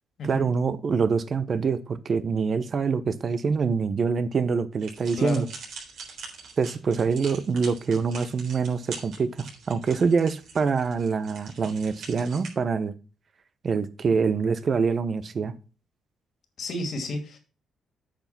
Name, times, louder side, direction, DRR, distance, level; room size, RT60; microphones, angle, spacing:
voice 1, 0.2-5.5 6.6-12.9 13.6-15.5, right 5 dB, 45° right, 0.9 m, -25 dB
sound 1, 4.8-12.5, right 4 dB, 75° right, 3.7 m, -43 dB
voice 2, 16.6-17.4, left 2 dB, 60° left, 2.6 m, -31 dB
8.8 x 5.7 x 6.1 m
cardioid pair, 90°, 0 cm